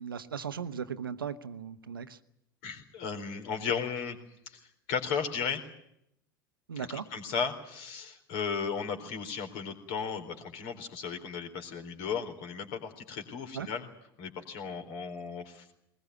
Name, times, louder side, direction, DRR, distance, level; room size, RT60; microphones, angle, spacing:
voice 1, 0.0-2.2 6.7-7.1 13.5-13.7, right 7 dB, 75° right, 12 dB, 1.1 m, -37 dB
voice 2, 2.6-4.2 4.5-5.6 6.8-13.9 14.2-15.7, left 6 dB, 55° left, 7 dB, 4.1 m, -35 dB
22.0 x 20.5 x 9.5 m, 0.75 s
figure-of-eight pair, 75°, 12 cm